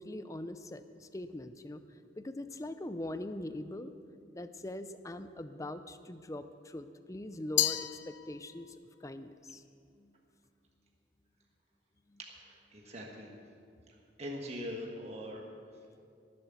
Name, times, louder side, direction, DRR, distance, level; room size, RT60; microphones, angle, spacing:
voice 1, 0.0-1.8 2.2-3.9 4.3-9.6 10.0-10.1 12.1-12.2, left 1 dB, 15° left, 11 dB, 0.5 m, -42 dB
Glass, 7.6-8.8, left 14 dB, 80° left, 0.5 m, -32 dB
voice 2, 12.2-13.3 14.2-15.5, equal, 35° right, 0 dB, 1.5 m, -42 dB
19.5 x 7.6 x 7.1 m, 2.5 s
head